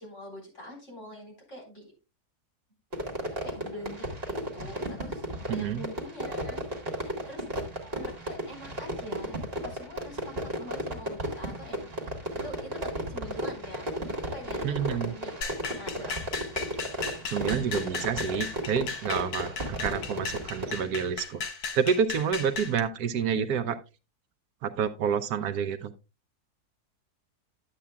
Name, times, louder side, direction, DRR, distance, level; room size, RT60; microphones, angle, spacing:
voice 1, 0.0-1.9 3.4-7.5 7.9-11.9 12.3-16.1, left 1 dB, 45° left, 0 dB, 4.2 m, -44 dB
Fireworks, 2.9-20.8, equal, 35° right, 2.0 m, -35 dB
voice 2, 5.5-5.8 14.6-15.1 17.3-21.4 21.7-23.8 24.6-25.9, right 7 dB, 75° right, 10 dB, 1.2 m, -28 dB
sound 1, 15.4-22.8, left 5 dB, 70° left, 1.4 m, -36 dB
11.5 x 8.3 x 2.3 m, 0.28 s
omnidirectional pair, 1.7 m